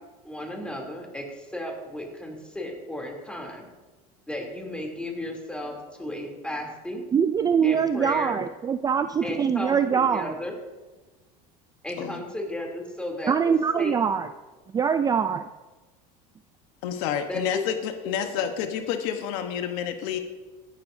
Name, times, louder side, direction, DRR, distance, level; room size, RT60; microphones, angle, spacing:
voice 1, 0.2-3.7 4.3-7.1 7.6-8.4 9.2-10.5 11.8-13.9 17.3-17.6 18.3-18.4, left 1 dB, 5° left, 0 dB, 2.9 m, -34 dB
voice 2, 7.1-10.3 13.3-14.3 14.7-15.5, right 7 dB, 20° right, 10 dB, 0.4 m, -23 dB
voice 3, 16.8-20.2, left 9 dB, 75° left, 7 dB, 1.1 m, -29 dB
16.0 x 11.5 x 2.7 m, 1.2 s
supercardioid pair, 105°, 18 cm